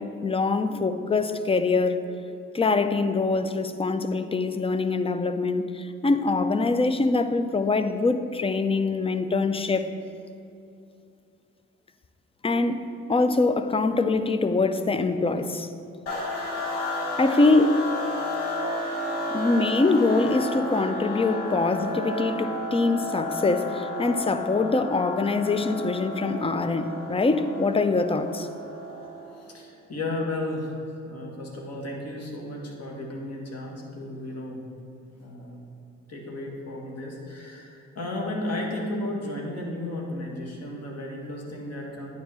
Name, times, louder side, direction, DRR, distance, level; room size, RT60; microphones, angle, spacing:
voice 1, 0.0-2.0 2.5-9.9 12.4-15.7 17.2-17.8 19.3-28.5, left 3 dB, 15° left, 0.5 m, -24 dB
sound 1, 16.1-29.4, left 1 dB, 80° left, 1.3 m, -32 dB
voice 2, 29.4-30.7 31.1-34.6 35.2-35.6 36.1-42.1, left 1 dB, 45° left, 1.8 m, -34 dB
9.2 x 3.7 x 6.3 m
hypercardioid pair, 45°, 35 cm